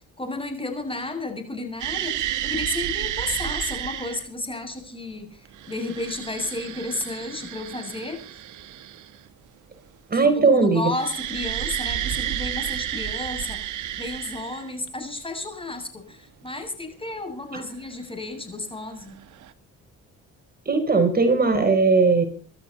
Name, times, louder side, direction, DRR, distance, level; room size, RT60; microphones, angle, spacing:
voice 1, 0.2-8.2 10.1-19.2, left 2 dB, 15° left, 6 dB, 7.5 m, -32 dB
sound 1, 1.8-4.3 5.4-9.3 10.9-14.9 17.9-18.0 19.1-19.5, right 12 dB, 80° right, 1.7 m, -31 dB
voice 2, 10.1-10.9 17.5-17.6 20.7-22.2, right 4 dB, 30° right, 7 dB, 4.4 m, -18 dB
26.0 x 13.0 x 4.3 m, 0.40 s
cardioid pair, 90°, 30 cm